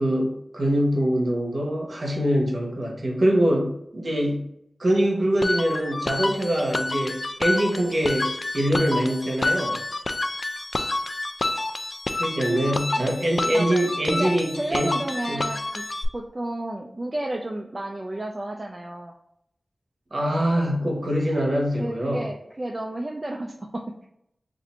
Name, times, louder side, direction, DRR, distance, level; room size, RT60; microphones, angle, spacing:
voice 1, 0.0-4.5 4.8-9.8 12.2-14.9 15.3-15.4 20.1-22.2, equal, 60° right, -1 dB, 1.0 m, -24 dB
sound 1, 5.4-16.0, left 2 dB, 55° left, 0.3 m, -28 dB
voice 2, 13.5-13.9 14.1-15.8 16.1-19.1 21.8-23.9, right 1 dB, 40° right, 1 dB, 0.4 m, -32 dB
2.7 x 2.5 x 4.1 m, 0.76 s
cardioid pair, 40°, 0 cm